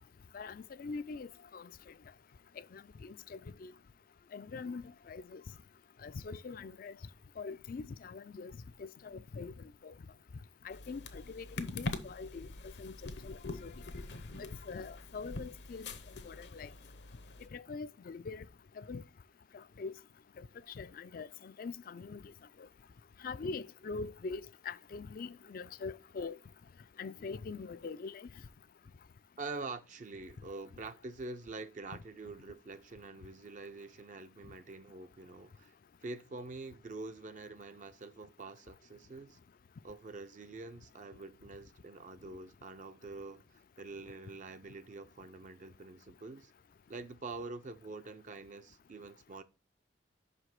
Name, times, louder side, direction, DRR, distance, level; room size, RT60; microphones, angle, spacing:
voice 1, 0.3-1.7 2.6-3.7 4.3-5.4 6.0-6.9 7.4-8.5 8.8-9.9 10.6-13.0 13.2-13.8 14.4-15.9 16.2-16.7 17.4-18.5 18.8-19.0 19.5-19.9 20.4-22.2 23.2-26.4 27.0-28.3, left 4 dB, 50° left, 0.4 m, -43 dB
sound 1, 10.7-17.5, left 2 dB, 65° left, 0.8 m, -44 dB
voice 2, 29.4-35.7 36.0-39.4 39.8-46.5 46.9-49.4, right 3 dB, 40° right, 0.5 m, -46 dB
5.6 x 5.0 x 5.9 m
head